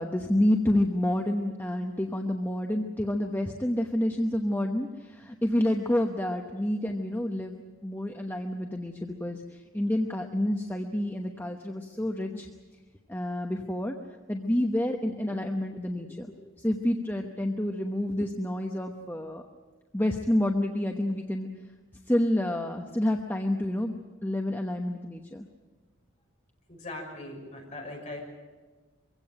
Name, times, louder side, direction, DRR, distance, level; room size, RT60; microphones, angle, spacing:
voice 1, 0.0-7.6 7.8-12.5 13.1-14.0 14.3-19.4 19.9-21.5 22.1-25.4, left 1 dB, 10° left, 2 dB, 1.0 m, -29 dB
voice 2, 26.7-28.2, left 2 dB, 35° left, -1 dB, 6.1 m, -40 dB
24.0 x 16.5 x 9.1 m, 1.3 s
head